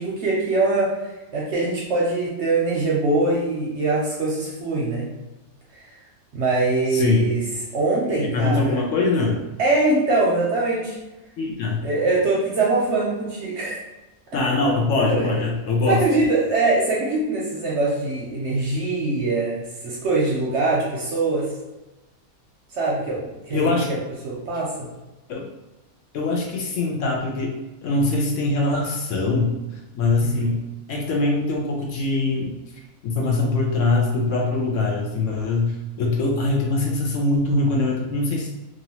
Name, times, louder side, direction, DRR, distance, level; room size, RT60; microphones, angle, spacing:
voice 1, 0.0-5.1 5.7-6.0 6.3-7.5 7.7-8.7 9.6-11.0 11.8-13.8 15.1-15.3 15.9-21.5 22.7-24.0 24.2-24.9 30.2-30.4, right 2 dB, 65° right, -3 dB, 0.7 m, -23 dB
voice 2, 6.9-7.3 8.2-9.4 11.4-11.8 14.3-16.0 23.5-23.9 25.3-25.5 26.1-27.5 27.8-29.5 29.9-30.6 30.9-32.5 33.0-35.7 36.0-38.5, left 3 dB, 65° left, -1 dB, 0.8 m, -22 dB
2.9 x 2.5 x 2.7 m, 1.0 s
omnidirectional pair, 1.5 m